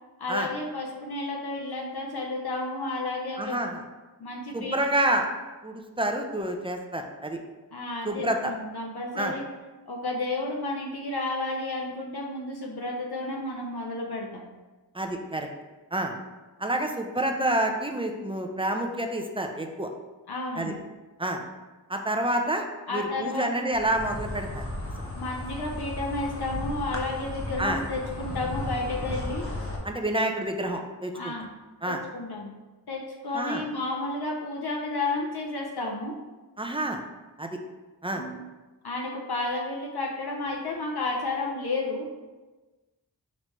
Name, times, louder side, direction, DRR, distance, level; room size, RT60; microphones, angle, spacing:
voice 1, 0.2-3.6 4.2-4.8 7.7-9.4 9.9-14.5 20.3-20.8 22.9-23.7 25.2-29.4 31.1-31.5 31.9-32.6 32.9-36.2 38.1-38.4 38.8-42.1, left 2 dB, 65° left, -1 dB, 0.7 m, -32 dB
voice 2, 3.4-3.8 4.5-5.3 5.6-7.4 8.1-8.5 9.2-9.3 14.9-15.5 15.9-16.1 16.6-19.9 20.6-20.7 21.2-21.4 21.9-22.6 22.9-24.6 25.0-25.1 27.6-27.8 29.8-31.3 31.8-32.0 33.3-33.6 36.6-37.0 37.4-37.6 38.0-38.2, right 1 dB, 15° right, 3 dB, 0.5 m, -28 dB
Insect, 23.7-29.8, left 1 dB, 35° left, 0.9 m, -35 dB
5.2 x 3.1 x 3.1 m, 1.2 s
wide cardioid pair, 50°, 40 cm